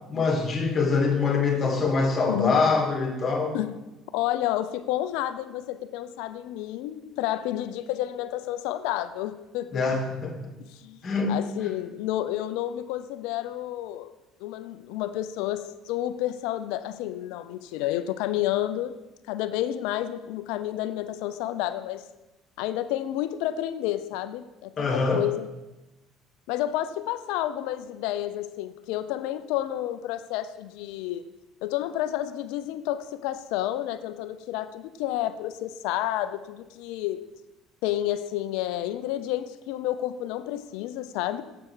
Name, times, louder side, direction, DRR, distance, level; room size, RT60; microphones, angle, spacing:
voice 1, 0.1-3.6 9.7-10.5 11.0-11.4 24.8-25.2, left 4 dB, 40° left, 1 dB, 2.5 m, -24 dB
voice 2, 2.3-2.6 3.5-3.8 4.1-9.8 10.6-11.0 11.3-14.1 14.4-19.0 19.3-22.1 22.6-25.5 26.5-31.3 31.6-37.2 37.8-41.4, left 13 dB, 75° left, 12 dB, 0.6 m, -30 dB
7.6 x 7.0 x 6.4 m, 1.0 s
hypercardioid pair, 70°, 0 cm